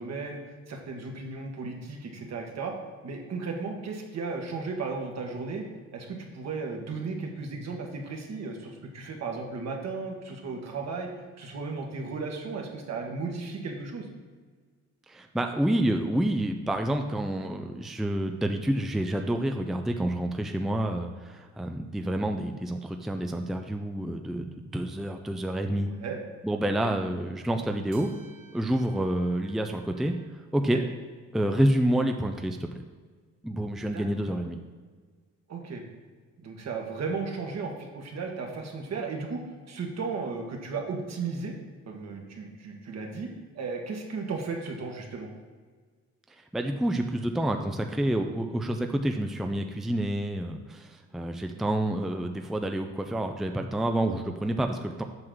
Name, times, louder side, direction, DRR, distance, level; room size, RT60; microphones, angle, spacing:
voice 1, 0.0-2.7 3.0-5.7 5.9-11.1 11.4-14.1 25.7-26.2 26.7-26.8 30.7-30.8 33.9-34.4 35.5-35.8 36.4-41.5 41.9-45.3, right 4 dB, 60° right, 1 dB, 1.6 m, -35 dB
voice 2, 15.1-25.9 26.4-28.1 28.5-30.1 30.5-30.8 31.3-32.8 33.4-34.6 46.5-55.0, right 1 dB, ahead, 5 dB, 0.5 m, -28 dB
sound 1, 27.9-30.2, right 3 dB, 80° right, 1.7 m, -56 dB
7.8 x 6.1 x 3.9 m, 1.5 s
cardioid pair, 90°, 30 cm